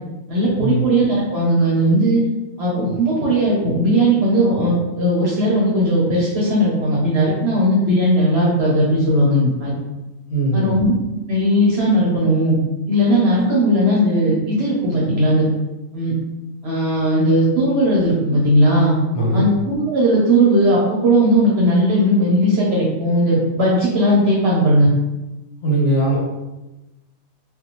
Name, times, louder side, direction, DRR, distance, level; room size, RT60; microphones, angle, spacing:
voice 1, 0.3-2.2 2.6-9.7 10.5-10.9 11.3-12.6 12.9-15.5 15.9-16.1 16.6-18.9 19.3-24.9, equal, 60° right, -5 dB, 0.8 m, -17 dB
voice 2, 10.3-10.8 19.1-19.5 25.6-26.2, right 2 dB, 55° left, -6 dB, 1.2 m, -19 dB
2.6 x 2.3 x 2.9 m, 1.0 s
omnidirectional pair, 1.4 m